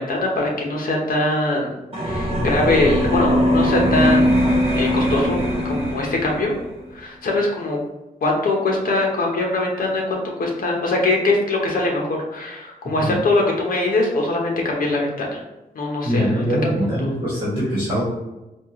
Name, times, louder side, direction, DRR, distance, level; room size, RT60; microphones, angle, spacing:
voice 1, 0.0-4.4 4.7-6.5 6.9-7.8 8.2-15.4 15.7-16.4 16.8-17.1, left 2 dB, 65° left, -1 dB, 0.9 m, -22 dB
sound 1, 1.9-6.6, equal, 35° right, 1.0 m, -20 dB
voice 2, 16.0-18.0, equal, 20° right, -9 dB, 1.2 m, -22 dB
4.3 x 2.4 x 3.0 m, 0.99 s
wide cardioid pair, 160°, 16 cm